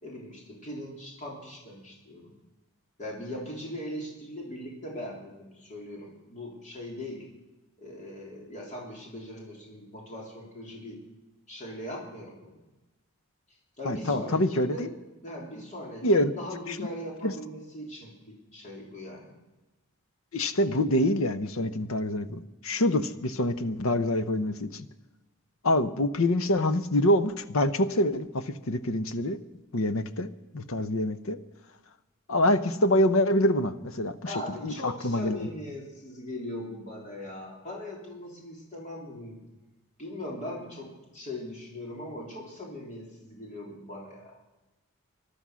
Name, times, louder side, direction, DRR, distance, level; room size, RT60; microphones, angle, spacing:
voice 1, 0.0-2.3 3.0-7.2 7.8-11.0 11.5-12.6 13.8-14.9 15.2-19.3 34.2-39.4 40.0-44.4, left 1 dB, 35° left, -2 dB, 3.5 m, -40 dB
voice 2, 13.8-14.9 16.0-16.3 16.7-16.9 17.2-17.3 20.3-24.8 25.6-29.4 29.7-31.4 32.3-34.3 34.6-35.5, left 1 dB, 70° left, 12 dB, 0.8 m, -26 dB
19.0 x 12.0 x 6.3 m, 1.1 s
head